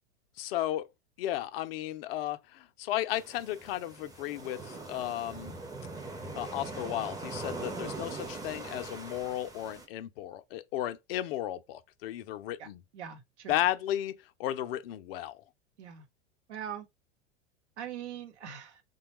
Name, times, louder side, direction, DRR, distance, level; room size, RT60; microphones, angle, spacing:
voice 1, 0.4-0.9 1.2-5.5 6.4-12.8 13.5-14.1 14.4-15.4, left 13 dB, 55° left, 0.5 m, -34 dB
sound 1, 3.1-9.9, right 3 dB, 10° right, 0.7 m, -41 dB
voice 2, 12.9-13.6 15.8-16.1 16.5-16.9 17.8-18.8, right 9 dB, 70° right, 0.9 m, -41 dB
3.3 x 2.3 x 3.0 m
figure-of-eight pair, 90°, 36 cm